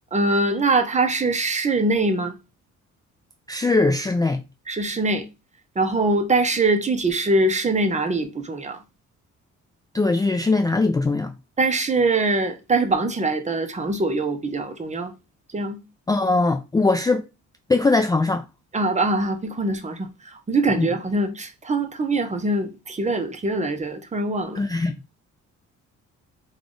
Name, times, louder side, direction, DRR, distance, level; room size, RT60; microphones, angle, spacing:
voice 1, 0.1-2.3 4.7-5.3 5.8-8.8 11.6-15.1 15.5-15.8 18.7-24.6, right 2 dB, 25° right, 0.7 m, -23 dB
voice 2, 3.5-4.4 9.9-11.3 16.1-17.3 17.7-18.4 20.8-20.9 24.6-24.9, left 3 dB, 15° left, 0.3 m, -20 dB
3.4 x 2.3 x 3.8 m
cardioid pair, 90°, 30 cm